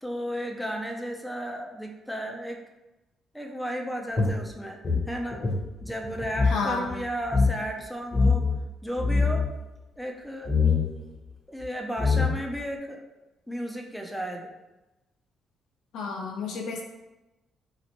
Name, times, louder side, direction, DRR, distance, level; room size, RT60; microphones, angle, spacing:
voice 1, 0.0-2.6 3.3-4.8 5.1-5.4 5.8-8.5 8.8-9.5 10.0-10.5 11.5-13.0 13.5-14.5, equal, ahead, 2 dB, 0.5 m, -34 dB
sound 1, 4.2-6.6 6.9-7.0 7.2-7.5 8.1-8.6 8.9-9.5 10.4-10.8 11.6-11.7 12.0-12.6, left 4 dB, 35° left, 0.8 m, -23 dB
voice 2, 6.5-6.9 15.9-16.8, left 4 dB, 85° left, 0 dB, 0.6 m, -30 dB
3.0 x 2.9 x 2.9 m, 1.0 s
cardioid pair, 90°, 0 cm